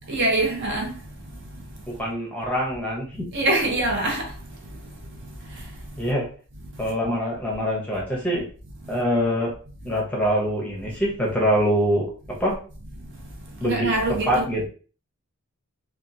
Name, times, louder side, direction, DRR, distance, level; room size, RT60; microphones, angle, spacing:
voice 1, 0.1-1.6 3.3-5.0 5.3-6.1 6.8-6.9 8.8-8.9 13.2-14.4, right 2 dB, 55° right, 0.6 m, -26 dB
voice 2, 2.0-3.2 6.0-6.3 6.8-8.4 8.9-9.5 9.9-12.0 12.4-12.6 13.6-13.9 14.3-14.7, equal, 5° left, 0.7 m, -24 dB
2.8 x 2.3 x 2.5 m
head